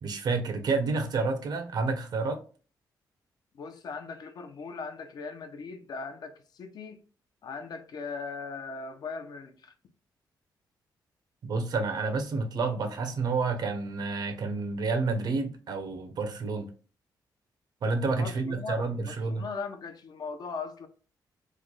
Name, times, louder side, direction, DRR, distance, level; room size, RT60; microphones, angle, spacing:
voice 1, 0.0-2.4 11.4-16.7 17.8-19.4, right 4 dB, 65° right, 0.7 m, -29 dB
voice 2, 3.5-7.0 7.4-9.7 18.2-20.9, left 4 dB, 60° left, 0.5 m, -39 dB
3.1 x 2.1 x 3.7 m
cardioid pair, 90°, 8 cm